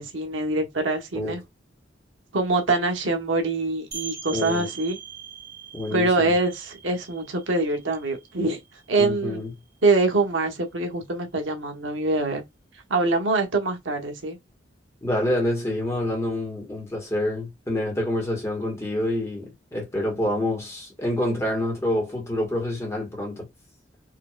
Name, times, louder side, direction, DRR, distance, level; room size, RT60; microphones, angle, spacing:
voice 1, 0.0-1.4 2.3-5.0 5.9-8.6 8.9-9.4 9.8-12.4 12.9-14.4, right 2 dB, 90° right, 1.1 m, -24 dB
sound 1, 3.9-9.4, right 6 dB, 20° right, 1.3 m, -41 dB
voice 2, 4.3-4.7 5.7-6.3 9.0-9.5 15.0-23.5, left 1 dB, 15° left, 1.7 m, -27 dB
4.6 x 3.0 x 2.4 m
head